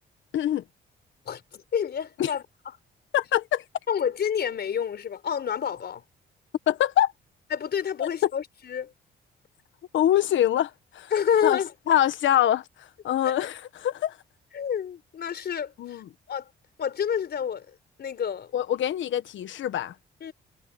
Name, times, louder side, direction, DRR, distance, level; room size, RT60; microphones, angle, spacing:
voice 1, 0.3-0.6 2.2-2.3 3.1-3.6 6.7-7.1 8.0-8.3 9.9-11.1 11.4-11.6 11.9-14.2 15.8-16.0 18.5-19.9, left 11 dB, 70° left, 1.4 m, -24 dB
voice 2, 1.3-2.4 3.9-6.0 7.5-8.9 11.1-11.7 13.2-13.3 14.5-16.0 16.3-16.5 16.8-17.7 18.0-18.5 20.2-20.3, left 8 dB, 55° left, 4.5 m, -28 dB
cardioid pair, 90°, 20 cm